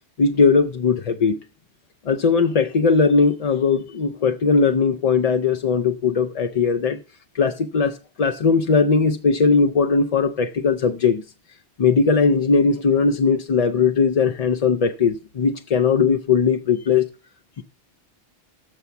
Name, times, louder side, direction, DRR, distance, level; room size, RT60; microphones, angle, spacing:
voice 1, 0.2-1.4 2.1-7.0 7.3-11.2 11.8-17.1 17.6-17.7, left 5 dB, 50° left, 0.5 m, -19 dB
7.7 x 6.9 x 6.9 m
omnidirectional pair, 1.1 m